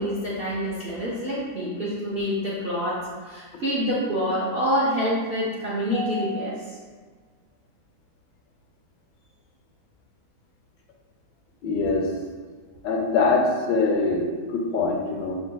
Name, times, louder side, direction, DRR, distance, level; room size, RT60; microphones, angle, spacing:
voice 1, 0.0-6.8, equal, 55° right, -7 dB, 0.6 m, -27 dB
voice 2, 11.6-12.1 12.8-14.2 14.5-15.3, left 3 dB, 85° left, 1 dB, 1.3 m, -23 dB
6.2 x 3.0 x 2.2 m, 1.5 s
omnidirectional pair, 1.9 m